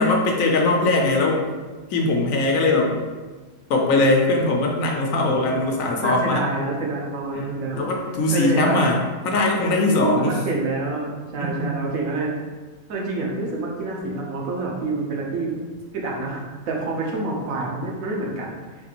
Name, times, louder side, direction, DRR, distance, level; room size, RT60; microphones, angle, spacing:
voice 1, 0.0-1.4 1.9-2.9 3.7-6.5 7.3-7.4 7.8-9.0 9.3-10.4 11.4-11.9, left 2 dB, 80° left, 0 dB, 1.0 m, -20 dB
voice 2, 5.1-7.9 8.3-8.9 9.7-12.4 12.9-15.5 15.9-18.6, right 3 dB, 85° right, -2 dB, 1.2 m, -27 dB
4.0 x 2.5 x 2.9 m, 1.3 s
omnidirectional pair, 1.4 m